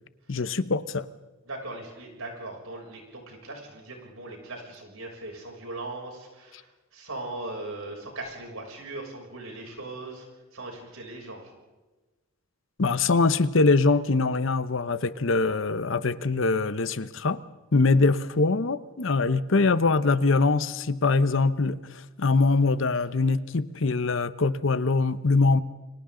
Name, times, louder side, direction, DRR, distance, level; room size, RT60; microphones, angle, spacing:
voice 1, 0.3-1.1 12.8-17.4 17.7-25.6, left 3 dB, 60° left, 15 dB, 0.8 m, -23 dB
voice 2, 1.4-10.3 10.5-11.5, right 2 dB, 80° right, 0 dB, 6.9 m, -39 dB
30.0 x 24.0 x 3.9 m, 1.2 s
head